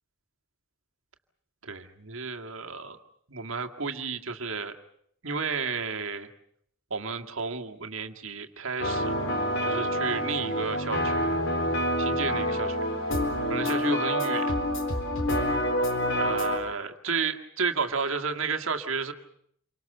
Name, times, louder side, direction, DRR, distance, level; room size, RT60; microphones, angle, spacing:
voice 1, 1.6-3.0 3.3-4.7 5.2-6.3 6.9-9.1 9.6-11.3 12.0-12.8 13.5-14.5 16.1-19.1, right 5 dB, 65° right, 5 dB, 2.1 m, -32 dB
sound 1, 8.8-16.6, equal, 55° left, 4.2 m, -27 dB
28.5 x 24.5 x 6.8 m, 0.69 s
head